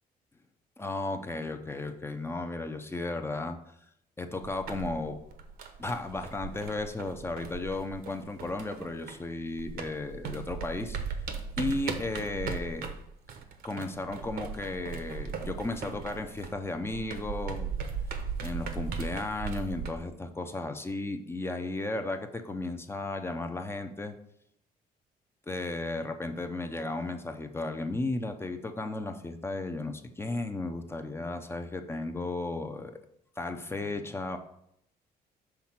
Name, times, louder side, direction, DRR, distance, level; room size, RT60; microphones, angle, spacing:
voice 1, 0.8-3.6 4.2-5.2 5.8-11.0 11.6-12.9 13.6-17.7 18.4-24.1 25.5-33.0 33.4-34.4, left 2 dB, 15° left, 6 dB, 0.6 m, -34 dB
sound 1, 4.4-9.3 9.6-19.9, right 6 dB, 70° right, 0.9 m, -38 dB
5.9 x 3.8 x 5.8 m, 0.75 s
cardioid pair, 125°, 16 cm